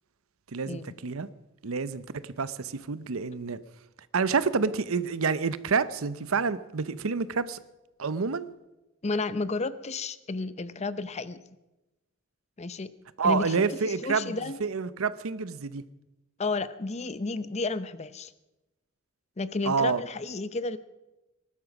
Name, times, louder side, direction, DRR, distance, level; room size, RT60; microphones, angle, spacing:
voice 1, 0.5-1.3 1.6-3.6 4.1-7.6 8.0-8.5 13.2-15.8 19.6-20.0, right 5 dB, 80° right, 16 dB, 0.7 m, -28 dB
voice 2, 9.0-11.4 12.6-12.9 13.2-14.6 16.4-18.3 19.4-20.8, left 3 dB, 30° left, 15 dB, 0.6 m, -32 dB
19.5 x 12.0 x 6.0 m, 1.0 s
head